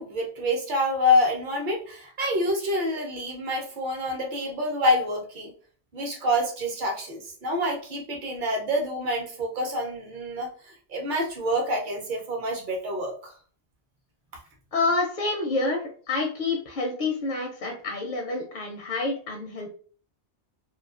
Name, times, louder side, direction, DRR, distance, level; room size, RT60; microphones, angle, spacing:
voice 1, 0.0-5.5 5.9-13.3, left 1 dB, 50° right, 1 dB, 0.8 m, -27 dB
voice 2, 14.7-19.7, left 3 dB, 60° left, 2 dB, 0.5 m, -28 dB
2.4 x 2.3 x 2.3 m, 0.43 s
omnidirectional pair, 1.2 m